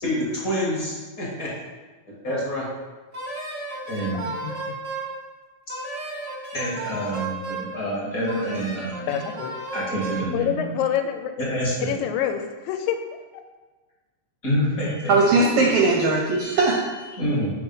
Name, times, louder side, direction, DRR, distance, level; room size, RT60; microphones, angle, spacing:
voice 1, 0.0-1.5 2.1-2.7 3.9-4.2 6.5-9.2 9.7-10.7 11.4-11.9 14.4-15.2 17.2-17.5, equal, 40° left, -6 dB, 1.4 m, -27 dB
Wind instrument woodwind instrument, 3.1-5.1 5.7-7.7 8.3-10.3, right 2 dB, 45° right, 0.9 m, -33 dB
voice 2, 9.1-9.5 10.3-11.3 11.8-13.0, left 9 dB, 85° left, 7 dB, 1.9 m, -26 dB
voice 3, 15.1-17.2, right 3 dB, 75° right, -2 dB, 1.4 m, -20 dB
4.5 x 4.4 x 5.3 m, 1.3 s
omnidirectional pair, 3.4 m